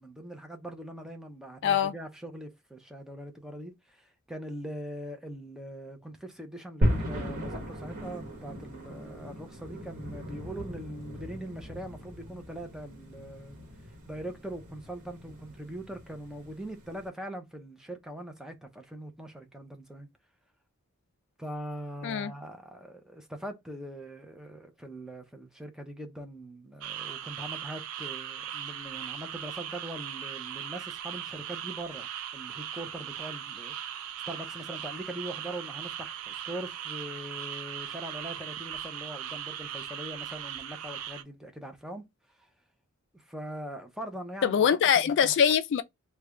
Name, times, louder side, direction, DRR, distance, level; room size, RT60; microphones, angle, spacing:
voice 1, 0.0-13.6 14.0-20.1 21.4-33.7 34.3-42.1 43.1-44.7 45.2-45.3, right 1 dB, 5° right, 0.6 m, -42 dB
voice 2, 1.6-1.9 22.0-22.3 44.4-45.8, left 8 dB, 55° left, 0.3 m, -23 dB
sound 1, 6.8-17.1, equal, 40° right, 1.3 m, -36 dB
sound 2, 26.8-41.2, right 10 dB, 70° right, 0.4 m, -39 dB
3.2 x 2.2 x 3.5 m
head